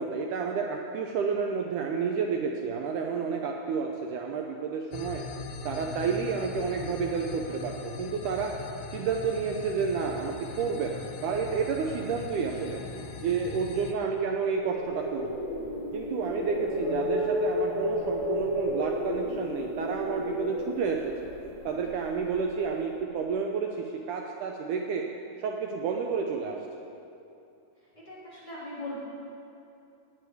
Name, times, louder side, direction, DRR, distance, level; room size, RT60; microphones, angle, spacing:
voice 1, 0.0-5.2 5.7-8.5 8.9-12.8 13.2-15.3 15.9-21.3 21.7-25.0 25.4-26.6, right 5 dB, 90° right, 1 dB, 1.7 m, -30 dB
sound 1, 4.9-13.9, left 4 dB, 85° left, 2.7 m, -40 dB
sound 2, 14.4-22.5, left 1 dB, 65° left, 4.1 m, -32 dB
voice 2, 27.9-29.0, left 1 dB, 10° left, -10 dB, 3.2 m, -40 dB
17.0 x 9.4 x 4.7 m, 2.7 s
omnidirectional pair, 4.5 m